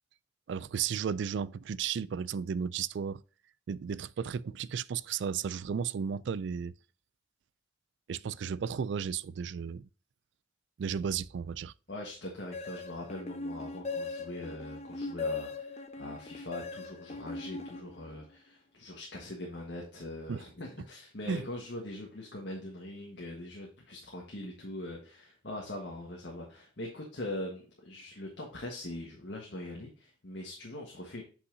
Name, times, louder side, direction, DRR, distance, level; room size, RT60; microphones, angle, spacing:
voice 1, 0.5-3.2 3.7-6.7 8.1-9.9 10.8-11.7 20.3-20.4 21.3-21.4, right 7 dB, 65° right, 0.3 m, -34 dB
voice 2, 11.9-31.2, left 1 dB, 65° left, 1.5 m, -42 dB
sound 1, 12.5-18.3, left 3 dB, 35° left, 0.8 m, -39 dB
8.1 x 5.6 x 2.7 m
head